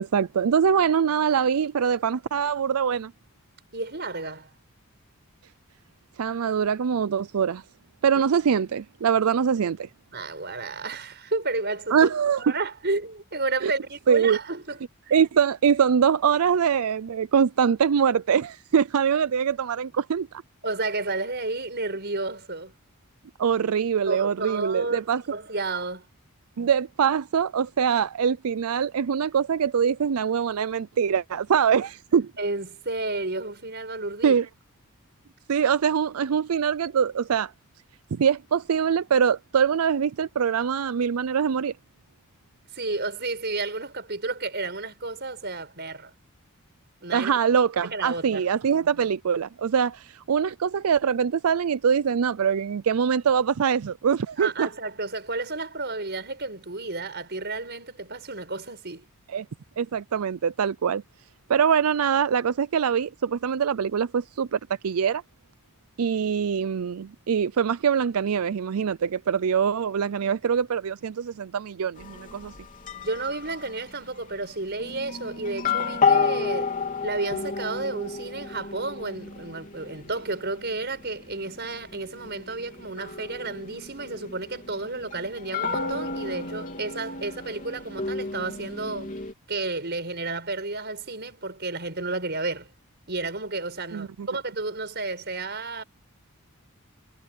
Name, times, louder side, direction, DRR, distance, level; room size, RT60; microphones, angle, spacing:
voice 1, 0.0-3.1 6.2-7.6 8.0-9.9 11.9-12.4 13.6-13.7 14.1-14.4 15.1-20.4 23.4-25.2 26.6-32.3 34.2-34.5 35.5-37.5 38.1-41.7 47.1-54.7 59.3-59.5 59.8-61.0 61.5-65.2 66.0-72.5 93.9-94.3, right 7 dB, 75° right, 0.4 m, -23 dB
voice 2, 3.7-4.5 8.1-8.2 10.1-12.1 12.4-14.8 15.0-15.2 20.6-22.7 24.1-26.1 32.4-34.4 42.7-46.1 47.0-47.3 47.8-48.4 54.4-59.0 73.0-76.7 77.0-89.1 89.5-92.7 93.1-95.8, right 3 dB, 50° right, 6.2 m, -31 dB
sound 1, 72.0-73.9 74.8-89.3, left 5 dB, 35° left, 3.6 m, -31 dB
head